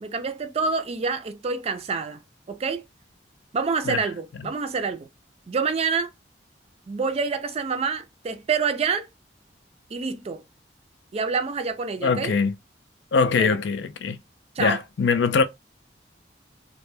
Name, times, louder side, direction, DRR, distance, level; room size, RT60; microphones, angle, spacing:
voice 1, 0.0-2.2 2.5-2.8 3.5-5.1 5.5-6.1 6.9-9.1 9.9-10.4 11.1-12.4 13.4-13.6 14.6-14.8, right 5 dB, 35° right, 0.3 m, -27 dB
voice 2, 12.0-12.5 13.1-14.2 14.6-15.4, left 5 dB, 75° left, 0.4 m, -22 dB
2.1 x 2.1 x 3.1 m
head